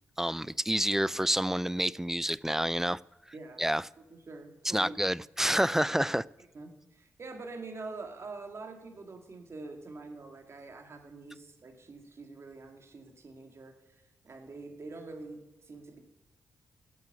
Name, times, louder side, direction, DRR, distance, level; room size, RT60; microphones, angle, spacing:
voice 1, 0.2-3.0 3.6-3.8 4.7-6.2, equal, 5° right, 22 dB, 0.3 m, -28 dB
voice 2, 3.3-3.7 4.0-5.0 6.5-16.0, right 3 dB, 50° right, 5 dB, 2.0 m, -45 dB
8.1 x 8.1 x 8.1 m, 1.0 s
hypercardioid pair, 40°, 6 cm